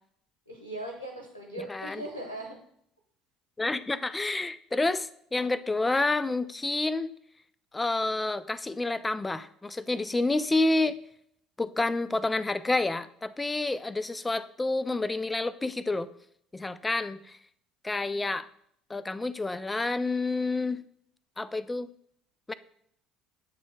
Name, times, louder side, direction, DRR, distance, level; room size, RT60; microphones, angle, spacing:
voice 1, 0.5-2.5, right 1 dB, 90° left, 0 dB, 0.8 m, -39 dB
voice 2, 1.5-2.0 3.6-7.1 7.7-11.0 11.6-16.1 16.5-17.4 17.8-18.5 18.9-20.8 21.4-21.9 22.5-22.6, left 2 dB, 15° left, 14 dB, 0.3 m, -29 dB
7.5 x 2.8 x 4.5 m, 0.69 s
figure-of-eight pair, 60°, 0 cm